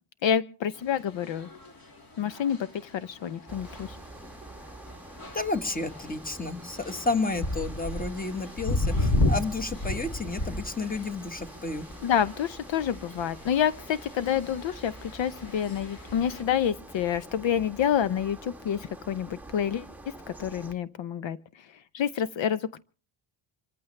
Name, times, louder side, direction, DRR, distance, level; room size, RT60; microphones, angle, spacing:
voice 1, 0.2-1.5 2.2-2.6 2.8-4.0 12.0-19.9 20.4-21.7 21.9-22.8, left 9 dB, 65° left, 15 dB, 0.7 m, -28 dB
sound 1, 0.8-16.4, left 2 dB, 45° left, 2.7 m, -34 dB
sound 2, 3.5-20.7, right 2 dB, 5° right, 1.1 m, -46 dB
voice 2, 5.3-11.8, left 3 dB, 20° left, 8 dB, 1.5 m, -31 dB
26.5 x 14.5 x 3.2 m, 0.38 s
wide cardioid pair, 145°, 47 cm